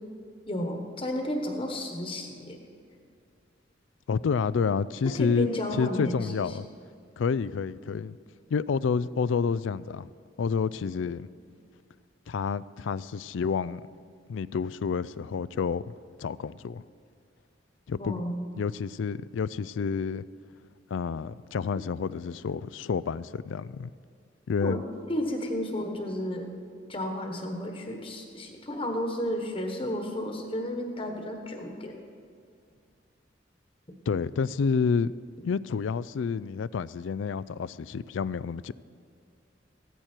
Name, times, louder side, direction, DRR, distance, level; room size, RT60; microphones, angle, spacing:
voice 1, 0.5-2.6 5.0-6.3 18.0-18.5 24.6-24.8 25.1-26.5 26.9-32.0, equal, 30° left, 1.2 m, -32 dB
voice 2, 4.1-5.5 5.7-6.7 7.2-8.2 8.5-10.1 10.4-11.3 12.3-13.8 14.3-15.8 16.2-16.8 17.9-18.2 18.6-20.2 20.9-23.9 24.5-24.8 34.1-35.1 35.4-38.7, left 5 dB, 85° left, 0.4 m, -29 dB
15.5 x 13.5 x 4.5 m
head